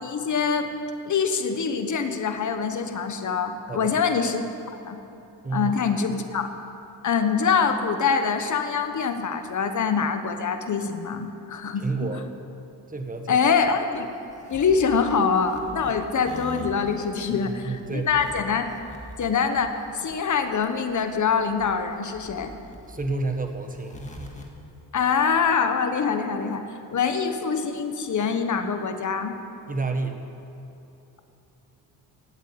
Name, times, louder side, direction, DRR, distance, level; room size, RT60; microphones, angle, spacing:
voice 1, 0.0-0.7 1.1-4.4 4.9-5.0 5.5-6.5 7.0-11.9 13.3-14.1 14.5-18.8 19.2-22.5 24.9-26.6 26.9-29.3, left 6 dB, 45° left, 7 dB, 1.3 m, -24 dB
voice 2, 11.7-12.2 12.9-13.4 17.3-18.1 22.9-24.0 29.7-30.2, right 3 dB, 20° right, 5 dB, 1.5 m, -30 dB
sound 1, 13.5-24.5, equal, 20° left, 1.8 m, -43 dB
16.0 x 8.9 x 8.6 m, 2.9 s
cardioid pair, 125°, 40 cm